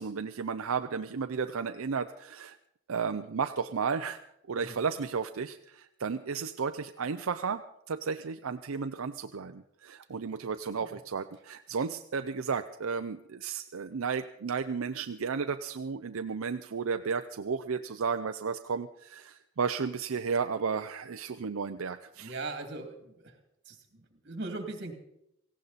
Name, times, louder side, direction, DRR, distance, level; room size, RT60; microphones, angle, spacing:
voice 1, 0.0-2.6 2.9-4.2 4.5-22.4, right 5 dB, 85° right, 8 dB, 0.6 m, -33 dB
voice 2, 22.2-23.4 23.7-24.9, right 2 dB, 55° right, 5 dB, 2.4 m, -39 dB
18.0 x 16.0 x 4.1 m, 0.79 s
head